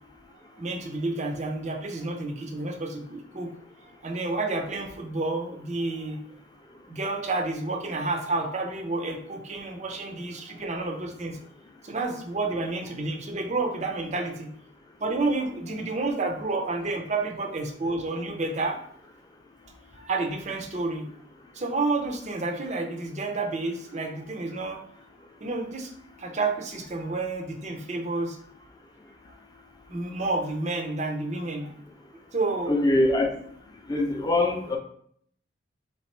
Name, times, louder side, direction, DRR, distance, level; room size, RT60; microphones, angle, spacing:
voice 1, 0.6-3.6 4.0-6.2 6.9-11.4 11.8-14.5 15.0-18.8 20.0-21.1 21.5-24.8 25.4-25.9 26.2-28.4 29.9-31.7 32.3-32.7, right 3 dB, 40° right, 4 dB, 0.6 m, -30 dB
voice 2, 32.7-33.3 33.9-34.8, left 2 dB, 20° left, 1 dB, 0.6 m, -23 dB
3.5 x 3.0 x 4.5 m, 0.64 s
head